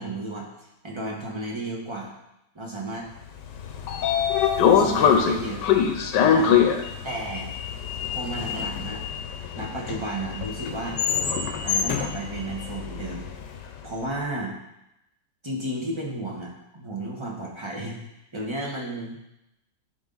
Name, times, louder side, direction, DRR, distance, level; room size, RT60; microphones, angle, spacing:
voice 1, 0.0-2.1 2.5-3.1 4.7-5.6 6.3-6.6 7.0-7.5 8.1-9.0 9.5-11.0 11.6-13.3 13.8-14.5 15.4-18.0 18.3-19.2, right 1 dB, 20° right, -2 dB, 1.1 m, -33 dB
Sliding door, 3.4-13.6, left 8 dB, 85° left, 1.3 m, -24 dB
10.5 x 3.6 x 3.9 m, 0.87 s
omnidirectional pair, 1.8 m